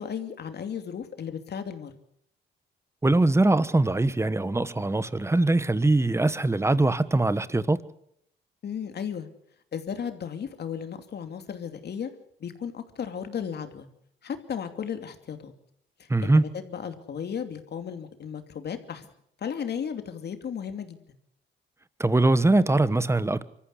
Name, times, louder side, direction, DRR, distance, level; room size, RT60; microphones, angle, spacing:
voice 1, 0.0-1.9 8.6-9.3 9.7-12.1 12.4-13.9 14.2-15.5 16.0-19.0 19.4-21.0, left 7 dB, 55° left, 2.8 m, -35 dB
voice 2, 3.0-7.8 16.1-16.5 22.0-23.5, right 2 dB, 15° right, 1.2 m, -22 dB
24.5 x 14.5 x 8.1 m
cardioid pair, 90°, 20 cm